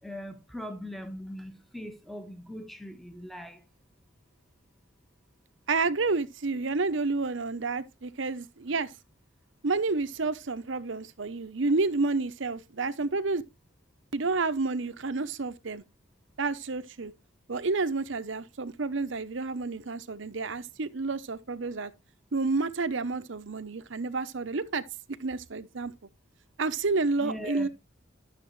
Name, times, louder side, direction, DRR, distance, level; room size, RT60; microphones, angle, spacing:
voice 1, 0.0-3.6 27.2-27.7, equal, ahead, 1.0 m, -40 dB
voice 2, 5.7-8.9 9.6-13.4 14.1-15.8 16.4-17.1 17.5-21.9 22.3-24.8 25.2-25.9 26.6-27.7, right 3 dB, 65° right, 0.8 m, -30 dB
11.5 x 6.7 x 3.2 m
head